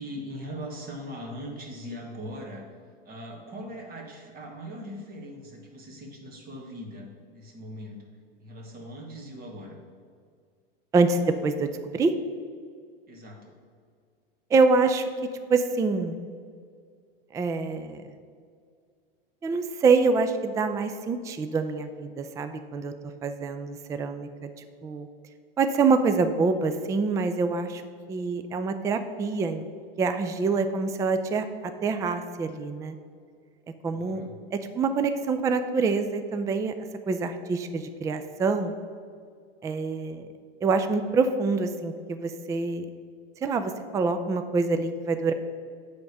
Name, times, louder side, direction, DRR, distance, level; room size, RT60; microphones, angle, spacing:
voice 1, 0.0-2.6 3.1-7.1 7.3-8.0 8.4-9.8 13.1-13.5 33.9-34.3, equal, 30° right, 1 dB, 1.9 m, -40 dB
voice 2, 10.9-12.1 14.5-15.1 15.5-16.2 17.3-18.0 19.4-22.9 23.2-24.5 24.8-25.1 25.6-27.8 28.1-29.6 30.0-31.5 31.8-33.0 33.8-34.2 34.5-36.7 37.1-38.7 39.6-40.2 40.6-42.9 43.4-45.3, right 4 dB, 10° right, 9 dB, 0.3 m, -25 dB
9.1 x 3.6 x 6.7 m, 2.1 s
hypercardioid pair, 110°, 30 cm